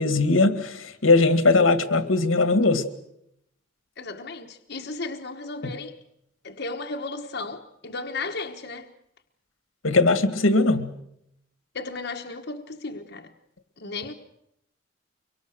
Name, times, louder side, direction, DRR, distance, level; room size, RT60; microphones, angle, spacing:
voice 1, 0.0-2.8 5.6-5.7 9.8-10.9, left 3 dB, 90° left, 2.0 m, -20 dB
voice 2, 4.0-5.9 6.4-8.9 11.7-13.3 13.8-14.1, left 3 dB, 55° left, 1.3 m, -34 dB
24.5 x 23.5 x 6.5 m
head